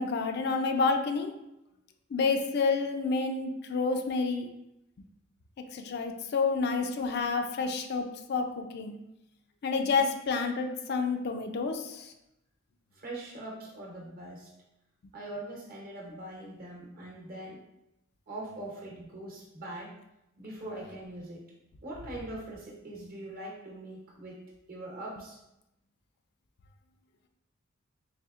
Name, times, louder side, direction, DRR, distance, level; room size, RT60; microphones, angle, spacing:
voice 1, 0.0-1.3 2.1-4.5 5.7-8.9 9.6-12.1, left 4 dB, 55° left, 5 dB, 0.4 m, -29 dB
voice 2, 12.9-14.5 15.1-17.6 18.3-19.9 20.4-21.4 21.8-25.4, right 1 dB, 50° right, -2 dB, 1.0 m, -42 dB
4.2 x 3.3 x 2.4 m, 0.87 s
head